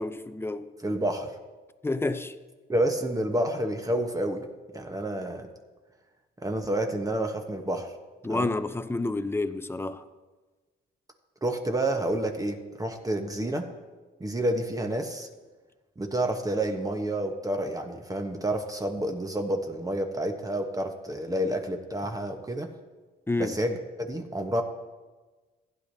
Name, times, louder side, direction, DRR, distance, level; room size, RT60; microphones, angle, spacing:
voice 1, 0.0-0.7 1.8-2.4 8.2-10.1 23.3-23.6, left 2 dB, 10° left, 0.5 m, -29 dB
voice 2, 0.8-1.3 2.7-4.5 4.7-5.5 6.4-7.9 8.3-8.5 11.4-13.7 14.2-15.3 16.0-22.7 23.4-24.6, right 1 dB, 15° right, 1.0 m, -29 dB
15.5 x 9.9 x 2.7 m
cardioid pair, 90°, 20 cm